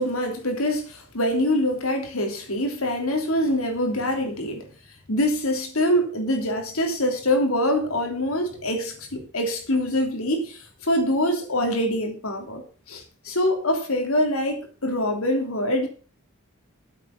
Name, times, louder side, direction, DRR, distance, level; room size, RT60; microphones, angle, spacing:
voice 1, 0.0-4.7 5.1-15.9, left 1 dB, 85° left, 3.0 m, -24 dB
8.9 x 7.4 x 7.1 m
head